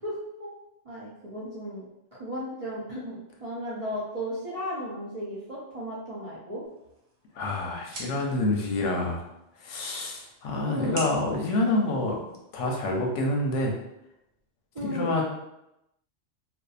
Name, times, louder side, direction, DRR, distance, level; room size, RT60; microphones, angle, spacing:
voice 1, 0.0-0.5 0.8-1.8 2.2-6.6 10.6-11.0 14.7-15.1, equal, 50° right, -8 dB, 0.4 m, -35 dB
sound 1, 6.6-12.7, right 2 dB, 65° right, 0.9 m, -45 dB
voice 2, 7.4-9.2 9.6-12.2 12.5-13.7 14.9-15.2, left 2 dB, 85° left, 0 dB, 0.9 m, -27 dB
2.6 x 2.2 x 2.3 m, 0.87 s
omnidirectional pair, 1.2 m